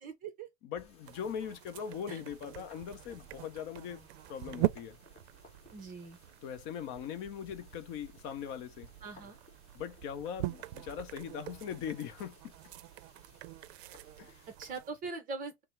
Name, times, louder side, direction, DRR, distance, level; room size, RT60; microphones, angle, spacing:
voice 1, 0.0-0.5 2.1-2.2 5.7-6.2 9.0-9.4 14.6-15.6, right 4 dB, 25° right, 0.7 m, -42 dB
voice 2, 0.6-5.0 6.4-8.9 9.7-12.5 14.2-14.4, left 8 dB, 35° left, 0.5 m, -41 dB
sound 1, 0.7-14.6, left 2 dB, 20° left, 1.2 m, -61 dB
sound 2, 1.0-14.9, right 16 dB, 90° right, 0.5 m, -42 dB
5.5 x 2.0 x 3.1 m
supercardioid pair, 165°, 32 cm